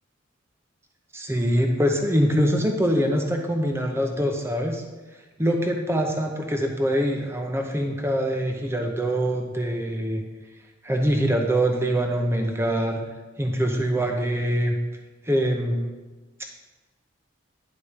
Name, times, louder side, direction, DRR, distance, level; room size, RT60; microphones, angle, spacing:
voice 1, 1.1-4.8 5.4-10.2 10.8-13.0 13.4-14.7 15.3-15.9, equal, 10° right, 2 dB, 0.6 m, -24 dB
10.0 x 4.2 x 5.0 m, 1.2 s
head